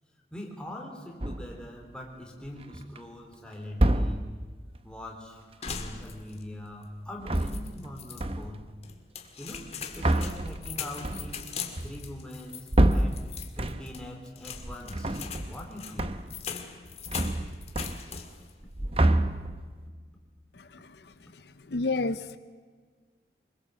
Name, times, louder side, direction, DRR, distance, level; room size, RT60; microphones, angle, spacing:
voice 1, 0.3-4.2 4.8-5.5 5.8-8.7 9.4-11.4 11.8-13.2 13.6-16.2, left 1 dB, 5° left, 0 dB, 3.7 m, -42 dB
sound 1, 1.2-1.7 2.4-3.0 3.7-4.5 7.1-7.9 8.2-8.7 9.5-14.1 14.5-15.7 16.0-16.5 16.7-18.3 18.6-19.8, right 1 dB, 30° right, 0.9 m, -28 dB
sound 2, 5.6-6.5 6.8-6.9 7.4-8.2 8.8-18.5 18.9-19.4, left 6 dB, 35° left, 2.1 m, -41 dB
voice 2, 20.5-21.1 21.3-22.4, left 3 dB, 70° left, 12 dB, 0.7 m, -32 dB
24.5 x 22.0 x 7.7 m, 1.5 s
head